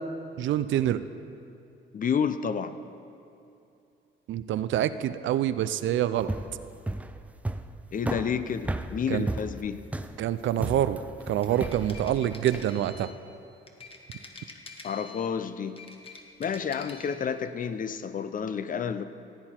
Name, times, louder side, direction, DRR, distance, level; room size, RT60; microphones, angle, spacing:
voice 1, 0.4-1.0 4.3-6.3 9.1-9.3 10.2-11.0 11.3-13.1, right 11 dB, 75° right, 13 dB, 0.5 m, -26 dB
voice 2, 1.9-2.8 7.9-9.8 14.8-15.8 16.4-19.0, left 7 dB, 45° left, 11 dB, 0.6 m, -30 dB
sound 1, 6.2-12.7, right 1 dB, 5° right, 0.4 m, -34 dB
sound 2, 11.2-13.2 13.7-15.3 15.7-17.2, left 4 dB, 30° left, 1.3 m, -46 dB
16.0 x 8.7 x 4.4 m, 2.7 s
cardioid pair, 90°, 20 cm